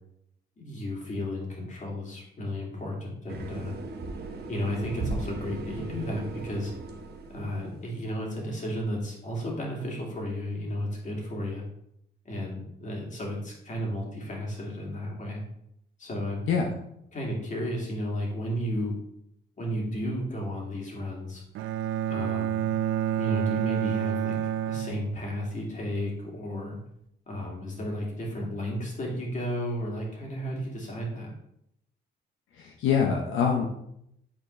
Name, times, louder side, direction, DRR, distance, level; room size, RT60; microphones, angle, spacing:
voice 1, 0.6-3.8 4.5-6.7 7.3-11.6 12.2-15.4 16.0-16.4 17.1-18.9 19.6-21.4 22.1-22.7 23.2-26.8 27.3-31.3, equal, 40° left, -1 dB, 2.3 m, -33 dB
sound 1, 3.3-7.9, right 3 dB, 55° right, 1.0 m, -37 dB
Bowed string instrument, 21.6-25.6, right 11 dB, 85° right, 0.4 m, -29 dB
voice 2, 32.6-33.7, left 6 dB, 85° left, 1 dB, 0.8 m, -24 dB
8.8 x 4.3 x 3.2 m, 0.77 s
cardioid pair, 90°, 20 cm